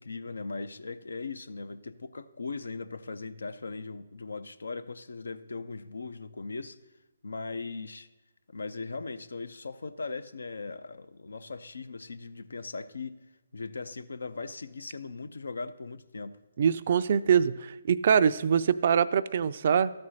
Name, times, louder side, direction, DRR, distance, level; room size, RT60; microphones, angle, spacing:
voice 1, 0.0-6.8 7.2-8.1 8.5-13.2 13.5-16.4, left 4 dB, 80° left, 0.5 m, -39 dB
voice 2, 16.6-19.9, right 7 dB, 50° right, 0.4 m, -24 dB
13.0 x 4.3 x 6.3 m
hypercardioid pair, 150°, 0 cm